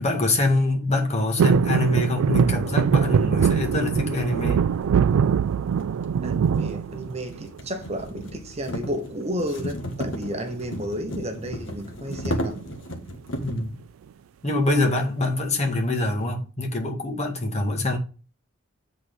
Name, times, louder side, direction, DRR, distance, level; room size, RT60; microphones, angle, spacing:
voice 1, 0.0-4.6 13.4-13.7 14.4-18.0, left 2 dB, 35° left, 1.8 m, -24 dB
sound 1, 1.4-7.6 8.0-8.6 9.9-10.3 10.5-10.6 10.9-11.2 12.1-13.0 13.5-13.6, right 7 dB, 85° right, 0.3 m, -23 dB
sound 2, 4.9-5.0 5.7-13.7, equal, 65° left, 1.4 m, -34 dB
voice 2, 6.2-12.6, equal, 30° right, 1.0 m, -32 dB
7.8 x 4.2 x 5.2 m
head